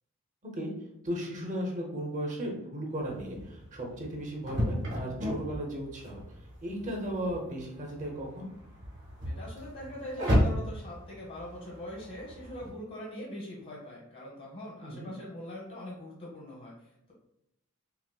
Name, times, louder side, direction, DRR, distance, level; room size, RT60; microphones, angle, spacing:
voice 1, 1.0-6.2 6.6-8.5 14.8-15.1, equal, 35° right, 0 dB, 0.8 m, -36 dB
sound 1, 3.0-12.7, equal, 55° right, 1.3 m, -34 dB
voice 2, 9.2-17.1, left 1 dB, 40° left, -5 dB, 0.9 m, -42 dB
5.6 x 2.0 x 2.2 m, 0.82 s
head